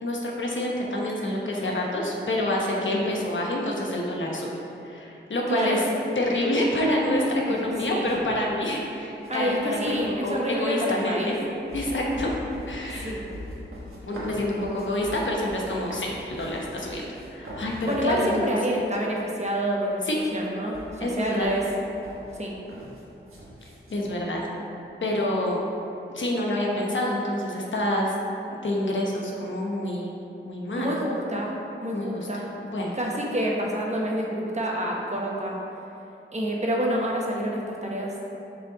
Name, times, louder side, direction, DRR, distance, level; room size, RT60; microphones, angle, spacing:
voice 1, 0.0-4.5 4.8-5.8 6.2-11.3 11.7-12.4 12.7-13.1 14.0-18.3 20.1-20.2 21.0-21.5 23.9-24.4 25.0-25.6 26.1-28.1 28.6-30.1 30.4-30.9 31.9-32.3 32.6-32.9, left 1 dB, 65° left, -2 dB, 1.0 m, -27 dB
voice 2, 5.5-5.8 7.5-7.6 7.9-8.1 9.3-11.4 13.0-13.3 17.9-20.1 20.3-21.6 22.4-22.5 30.8-31.5 31.8-32.4 32.9-35.6 36.3-38.1, equal, 35° right, -2 dB, 1.1 m, -28 dB
sound 1, 7.5-8.4 9.2-10.3 11.0-18.2 18.8-18.9 19.1-19.9 20.1-24.1, equal, 85° right, 1.3 m, -41 dB
6.8 x 4.1 x 3.9 m, 3.0 s
cardioid pair, 50°, 21 cm